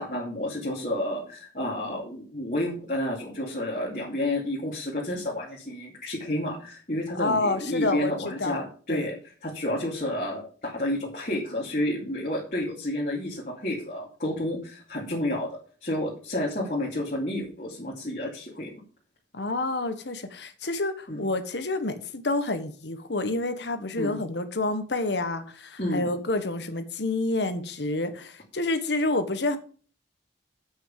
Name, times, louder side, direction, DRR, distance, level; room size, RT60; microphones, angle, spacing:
voice 1, 0.0-9.1 9.4-18.7 21.1-21.2 24.0-24.2 25.8-26.2, left 1 dB, 45° left, -5 dB, 2.7 m, -30 dB
voice 2, 7.1-8.6 8.9-9.1 19.3-29.6, left 2 dB, 75° left, 9 dB, 1.4 m, -28 dB
8.0 x 6.4 x 6.8 m, 0.41 s
head